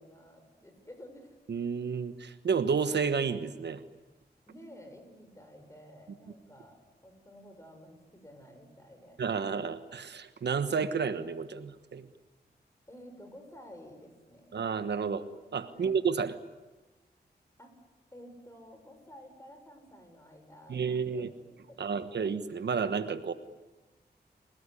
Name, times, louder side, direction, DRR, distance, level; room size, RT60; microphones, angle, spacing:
voice 1, 0.0-1.4 4.5-9.2 12.9-14.5 15.7-16.0 17.6-17.8 18.1-22.2, equal, 15° left, 5 dB, 7.1 m, -52 dB
voice 2, 1.5-3.8 9.2-12.1 14.5-15.3 15.5-16.3 20.7-21.3 21.8-23.3, right 6 dB, 90° right, 11 dB, 1.3 m, -31 dB
29.5 x 18.5 x 10.0 m, 1.2 s
wide cardioid pair, 70°, 17 cm